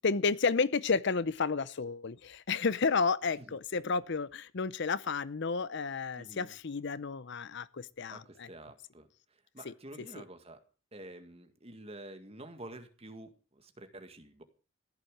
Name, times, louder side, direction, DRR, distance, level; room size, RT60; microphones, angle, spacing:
voice 1, 0.0-8.5 9.6-9.7 10.2-10.3, left 4 dB, 55° left, 0.6 m, -31 dB
voice 2, 6.2-6.5 8.1-9.1 9.5-10.6 10.9-14.4, right 1 dB, 30° right, 1.9 m, -49 dB
15.5 x 11.0 x 6.4 m
head